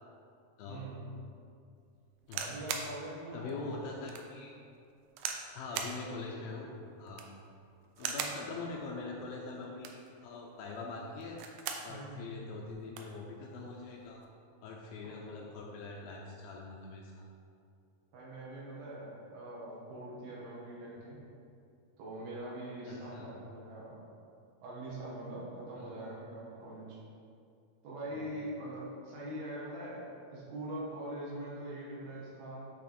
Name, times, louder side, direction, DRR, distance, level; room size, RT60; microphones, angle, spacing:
voice 1, 0.7-1.0 2.3-3.7 8.0-8.4 11.9-12.2 15.0-15.1 18.1-21.2 22.0-24.0 24.6-27.0 27.8-32.7, right 1 dB, 75° right, -6 dB, 3.2 m, -43 dB
sound 1, 2.2-2.9 3.5-3.6 4.1-4.3 5.2-5.5 5.7-6.0 7.0-7.4 8.0-8.4 9.6-10.1 11.2-11.9 12.3-12.4 12.6-13.1 14.0-14.2, right 7 dB, 90° right, 1.9 m, -38 dB
voice 2, 3.3-4.6 5.5-6.7 7.0-7.3 8.0-11.4 11.8-14.2 14.6-17.3 22.9-23.3 25.8-26.1 28.1-28.2, left 3 dB, 80° left, -1 dB, 2.2 m, -43 dB
9.2 x 3.4 x 4.2 m, 2.4 s
omnidirectional pair, 4.6 m